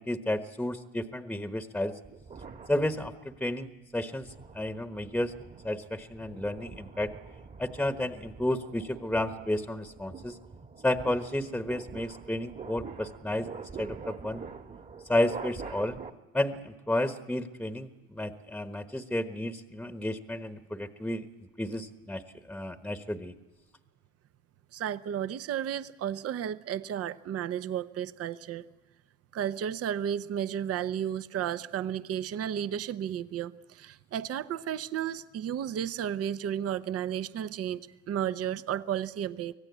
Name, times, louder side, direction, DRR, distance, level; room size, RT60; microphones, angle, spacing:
voice 1, 0.0-1.9 2.7-4.3 4.5-5.3 5.6-7.1 7.6-10.4 10.8-13.5 13.8-14.4 15.1-16.0 16.3-21.3 21.6-22.2 22.5-23.3, left 1 dB, 5° left, 9 dB, 1.2 m, -32 dB
sound 1, 2.1-3.5 4.0-16.1, right 5 dB, 25° right, 1.5 m, -45 dB
voice 2, 24.7-28.6 29.3-39.5, right 9 dB, 45° right, 13 dB, 0.9 m, -33 dB
25.0 x 17.0 x 8.3 m, 1.1 s
hypercardioid pair, 75°, 34 cm